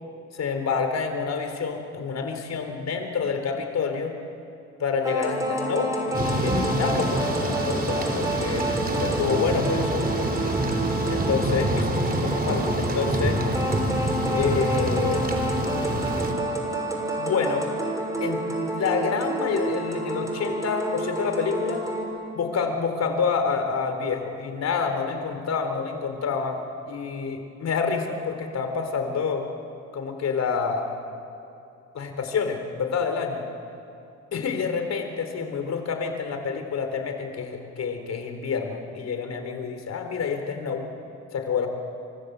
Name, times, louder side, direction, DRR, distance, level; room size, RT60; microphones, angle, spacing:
voice 1, 0.3-4.1 4.8-8.7 9.0-10.4 11.1-13.4 14.3-15.8 17.2-17.6 18.2-21.8 22.3-26.6 26.9-29.5 29.9-30.9 31.9-33.4 34.3-40.8 41.3-41.7, left 5 dB, 60° left, 6 dB, 4.2 m, -28 dB
sound 1, 5.0-22.0, right 1 dB, 10° right, 6.4 m, -29 dB
Thunder / Rain, 6.1-16.3, right 1 dB, 30° right, 4.0 m, -27 dB
29.0 x 25.0 x 8.3 m, 2.6 s
cardioid pair, 90°, 30 cm